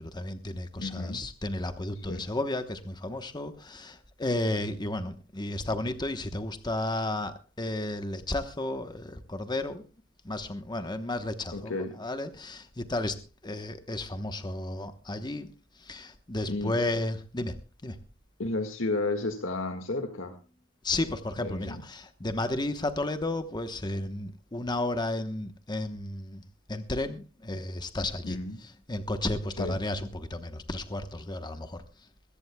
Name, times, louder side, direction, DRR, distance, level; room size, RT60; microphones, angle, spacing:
voice 1, 0.0-9.8 10.2-15.5 15.8-17.6 17.8-18.0 20.8-26.4 26.7-28.4 28.9-31.8, left 2 dB, 20° left, 1.0 m, -33 dB
voice 2, 0.8-1.2 2.1-2.2 11.5-11.9 16.5-16.7 18.4-20.4 21.4-21.8 28.2-28.6 29.6-29.8, left 2 dB, 75° left, 1.8 m, -32 dB
22.0 x 15.5 x 2.3 m
head